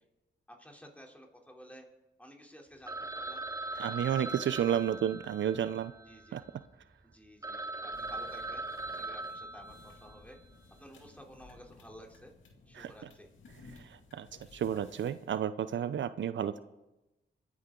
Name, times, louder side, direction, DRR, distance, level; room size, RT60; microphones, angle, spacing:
voice 1, 0.5-1.9 2.2-3.4 3.8-4.2 4.7-4.8 6.1-6.4 7.0-10.4 10.7-12.3 12.7-13.3 14.4-14.5, equal, 5° left, 1 dB, 3.2 m, -53 dB
Telephone, 2.9-6.7 7.1-7.2 7.4-10.3, right 2 dB, 15° right, 0.9 m, -40 dB
voice 2, 3.7-5.9 6.3-6.4 12.8-12.9 13.8-16.6, right 9 dB, 80° right, 14 dB, 0.5 m, -32 dB
sound 1, 7.9-15.3, left 3 dB, 80° left, 2.1 m, -57 dB
26.0 x 9.6 x 3.8 m, 1.0 s
cardioid pair, 60°, 19 cm